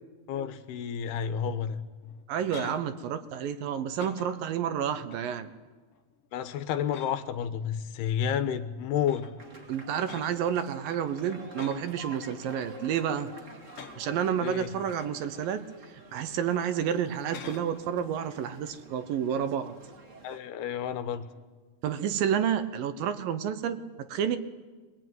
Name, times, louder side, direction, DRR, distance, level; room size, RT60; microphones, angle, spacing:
voice 1, 0.3-1.8 6.3-9.3 14.4-14.7 20.2-21.2, left 8 dB, 85° left, 10 dB, 3.1 m, -30 dB
sound 1, 2.0-2.9 3.3-3.6 3.9-4.5 5.1-5.5 5.9-6.2 6.9-7.5 8.4-8.5 9.0-9.5 10.0-10.5 11.5-12.0 12.4-13.0 13.6-14.2 14.8-15.6 16.0-16.2 17.1-17.8 21.2-21.6, left 7 dB, 65° left, 1.6 m, -47 dB
voice 2, 2.3-5.5 9.7-13.3 14.0-15.6 16.1-19.8 21.8-23.8 24.1-24.4, right 8 dB, 70° right, 10 dB, 2.6 m, -30 dB
sound 2, 9.4-20.4, right 1 dB, 25° right, 2.0 m, -49 dB
22.0 x 21.5 x 9.3 m, 1.3 s
omnidirectional pair, 4.5 m